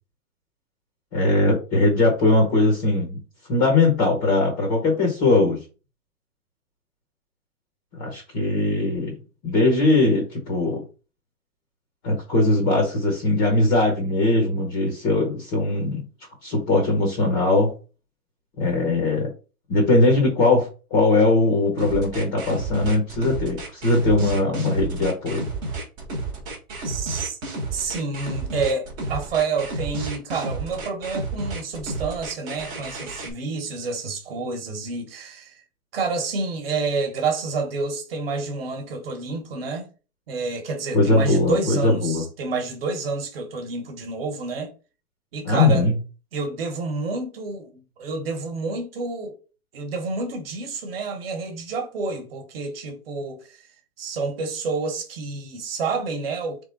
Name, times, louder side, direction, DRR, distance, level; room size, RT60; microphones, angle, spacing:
voice 1, 1.1-3.2 3.5-5.6 8.0-9.2 9.4-10.8 12.0-16.0 16.4-17.7 18.6-19.3 19.7-25.5 40.9-42.2 45.4-46.0, left 2 dB, 20° left, 0.8 m, -20 dB
sound 1, 21.8-33.3, right 3 dB, 10° right, 0.7 m, -31 dB
voice 2, 26.8-27.4 27.7-35.6 35.9-39.9 40.3-44.7 45.3-45.9 46.3-49.4 49.7-53.7 54.0-56.6, right 4 dB, 40° right, 1.2 m, -29 dB
3.6 x 3.5 x 3.9 m
hypercardioid pair, 160°, 44 cm